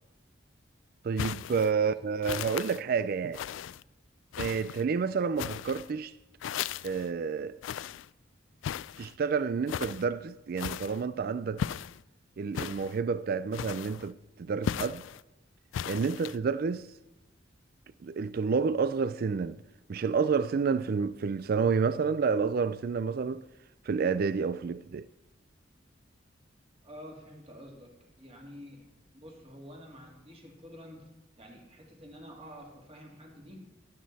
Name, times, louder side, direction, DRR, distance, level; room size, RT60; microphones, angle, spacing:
voice 1, 1.0-3.4 4.4-6.1 6.8-7.6 9.0-11.6 12.4-15.0 15.9-16.9 18.0-19.6 19.9-23.4 23.9-25.1, right 5 dB, 50° right, 0.4 m, -29 dB
sound 1, 1.2-1.7 2.2-2.8 3.3-3.8 4.3-4.8 5.4-5.9 6.4-7.1 7.6-8.1 8.6-9.1 9.7-10.1 10.6-11.0 11.6-12.0 12.5-13.0 13.5-14.1 14.6-15.2 15.7-16.4, left 9 dB, 85° left, 0.3 m, -36 dB
voice 2, 26.8-28.9 29.1-31.1 31.4-33.6, equal, 30° right, 2.6 m, -49 dB
12.0 x 11.5 x 4.1 m
head